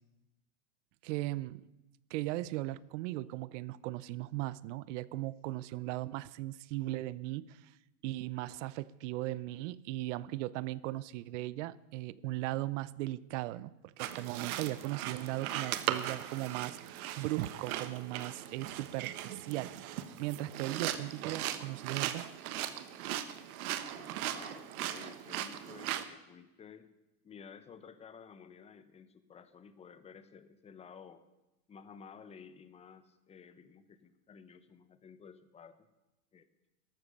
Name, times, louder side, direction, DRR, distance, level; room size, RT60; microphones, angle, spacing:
voice 1, 1.0-1.6 2.1-7.8 8.0-19.8 20.2-22.2, right 17 dB, 50° right, 20 dB, 0.7 m, -38 dB
sound 1, 14.0-26.1, right 12 dB, 70° right, 1.4 m, -39 dB
voice 2, 23.9-26.9 27.2-31.2 31.7-35.9 36.3-36.5, left 6 dB, 15° left, 12 dB, 0.9 m, -53 dB
13.5 x 12.5 x 6.7 m, 0.99 s
supercardioid pair, 140°, 46 cm